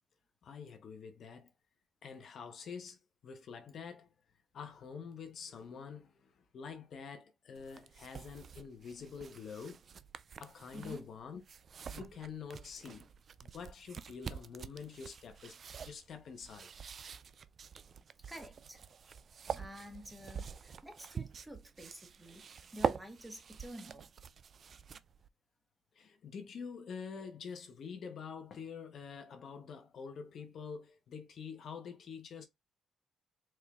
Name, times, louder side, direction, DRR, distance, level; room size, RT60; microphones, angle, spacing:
voice 1, 0.4-1.5 2.0-4.1 4.5-9.8 10.4-11.4 11.9-13.1 13.4-16.7 25.9-32.5, left 6 dB, 60° left, 0.8 m, -47 dB
sound 1, 7.5-25.3, right 6 dB, 50° right, 0.3 m, -45 dB
voice 2, 10.7-11.1 18.3-18.8 19.5-24.1, equal, 5° right, 1.2 m, -50 dB
4.4 x 3.1 x 2.3 m
cardioid pair, 90°, 0 cm